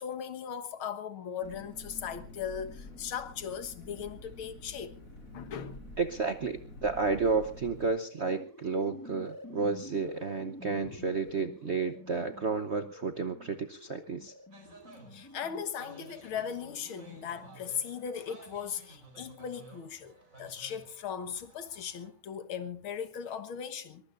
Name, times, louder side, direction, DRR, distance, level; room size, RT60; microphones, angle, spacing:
voice 1, 0.0-5.0 5.3-5.8 10.8-11.0 15.1-24.0, left 8 dB, 75° left, 2.1 m, -38 dB
Engine, 1.4-7.9, left 1 dB, 40° left, 6.0 m, -48 dB
voice 2, 6.0-14.3, right 4 dB, 55° right, 0.8 m, -31 dB
sound 1, 7.7-18.3, left 1 dB, 10° left, 1.3 m, -50 dB
sound 2, 14.5-22.1, right 2 dB, 35° right, 4.8 m, -54 dB
22.0 x 22.0 x 2.6 m
omnidirectional pair, 2.3 m